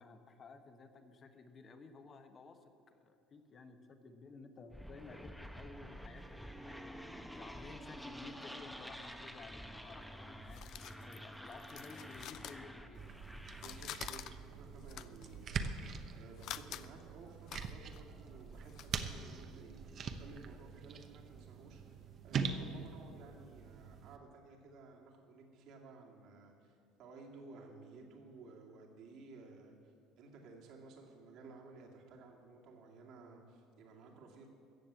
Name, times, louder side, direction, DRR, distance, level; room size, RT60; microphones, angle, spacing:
voice 1, 0.0-13.1, left 4 dB, 35° left, 7 dB, 1.3 m, -55 dB
sound 1, 4.7-14.1, equal, ahead, 1.0 m, -49 dB
sound 2, 9.8-13.2 13.5-19.0, left 12 dB, 60° left, 0.5 m, -49 dB
sound 3, 12.9-24.2, right 5 dB, 45° right, 1.0 m, -43 dB
voice 2, 13.5-34.5, right 3 dB, 65° right, 0 dB, 2.5 m, -55 dB
14.5 x 7.4 x 8.4 m, 2.6 s
supercardioid pair, 100°, 0 cm